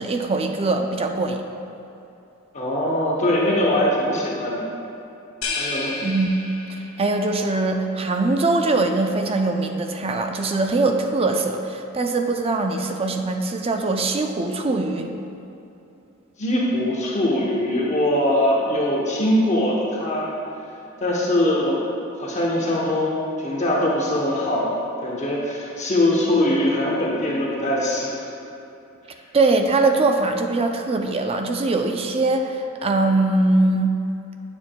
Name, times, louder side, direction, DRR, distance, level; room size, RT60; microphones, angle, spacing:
voice 1, 0.0-1.4 6.0-6.3 6.7-15.1 29.3-34.0, right 2 dB, 30° right, 4 dB, 0.4 m, -22 dB
voice 2, 2.5-4.7 5.5-5.9 16.4-20.3 21.0-21.8 22.2-24.7 25.0-28.3, left 1 dB, 35° left, -3 dB, 0.8 m, -22 dB
sound 1, 5.4-7.1, left 3 dB, 90° left, 0.8 m, -30 dB
9.2 x 7.0 x 2.2 m, 2.9 s
head